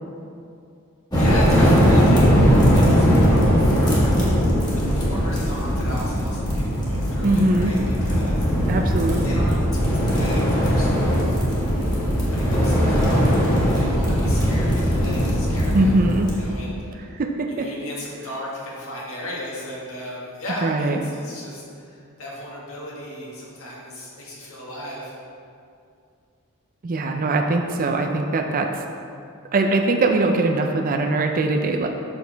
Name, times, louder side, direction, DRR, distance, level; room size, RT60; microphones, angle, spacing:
voice 1, 1.1-2.4 2.7-4.1 4.7-8.8 9.2-11.4 12.3-15.9 16.3-16.8 17.5-25.1, equal, 65° left, -5 dB, 1.8 m, -35 dB
sound 1, 1.1-16.4, equal, 20° left, 1.6 m, -19 dB
voice 2, 7.2-7.7 8.7-9.4 15.7-16.3 17.1-17.7 20.6-21.1 26.8-28.8 29.5-31.9, right 2 dB, 40° right, 3 dB, 0.4 m, -21 dB
7.1 x 6.4 x 3.4 m, 2.4 s
head